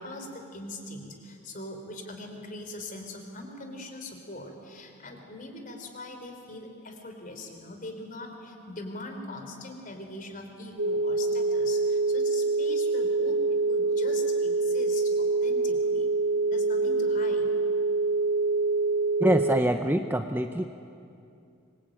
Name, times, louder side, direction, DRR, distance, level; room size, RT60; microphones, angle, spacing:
voice 1, 0.0-16.1 16.5-17.5, left 2 dB, 40° left, 4 dB, 3.6 m, -41 dB
sound 1, 10.8-19.6, right 3 dB, 55° right, 0.6 m, -25 dB
voice 2, 19.2-20.6, right 1 dB, 10° right, 6 dB, 0.6 m, -25 dB
25.5 x 23.0 x 8.9 m, 2.6 s
head